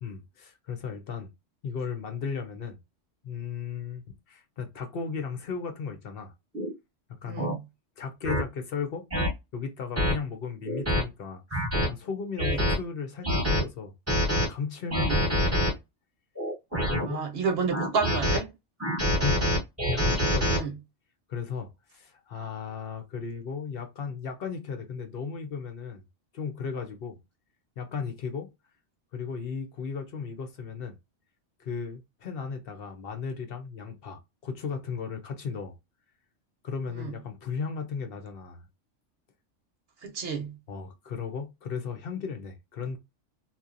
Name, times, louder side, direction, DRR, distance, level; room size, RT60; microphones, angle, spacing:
voice 1, 0.0-1.3 1.6-2.8 3.2-4.0 4.3-6.3 7.2-7.6 8.0-9.1 9.5-13.9 14.3-15.8 16.9-17.2 19.2-19.5 19.9-20.8 21.3-26.0 26.3-27.2 27.8-28.5 29.1-31.0 31.6-35.8 36.6-38.7 40.7-43.0, left 5 dB, 60° left, 0.7 m, -35 dB
sound 1, 6.5-6.7 7.4-7.5 8.2-8.4 9.1-9.3 10.0-10.1 10.7-11.0 11.5-11.9 12.4-12.7 13.2-13.6 14.1-14.5 14.9-15.7 16.4-17.1 17.7-18.4 18.8-20.6, equal, 15° right, 1.0 m, -26 dB
voice 2, 7.3-7.6 12.5-12.6 15.0-15.2 17.0-18.5 20.5-20.7 37.0-37.1 40.0-40.5, right 5 dB, 55° right, 1.0 m, -30 dB
2.8 x 2.2 x 2.4 m
omnidirectional pair, 1.3 m